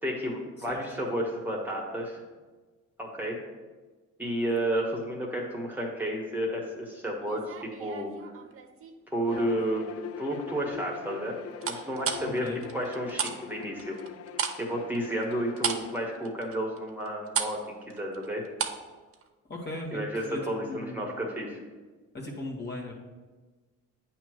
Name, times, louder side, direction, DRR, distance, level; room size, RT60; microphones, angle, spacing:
voice 1, 0.0-2.2 3.0-3.4 4.2-7.5 7.8-8.1 9.1-9.9 10.2-11.3 11.6-12.5 12.7-14.0 14.6-18.4 19.9-21.6, right 1 dB, 5° right, -2 dB, 1.4 m, -31 dB
sound 1, 7.2-8.9 9.4-9.9 11.6-13.4 13.6-18.9 19.1-19.3, right 7 dB, 45° right, 0.8 m, -34 dB
Bowed string instrument, 9.2-16.0, left 9 dB, 55° left, 0.4 m, -42 dB
voice 2, 12.2-12.6 19.5-21.1 22.1-22.9, left 2 dB, 35° left, -1 dB, 1.5 m, -38 dB
8.6 x 3.0 x 6.3 m, 1.3 s
cardioid pair, 90°, 30 cm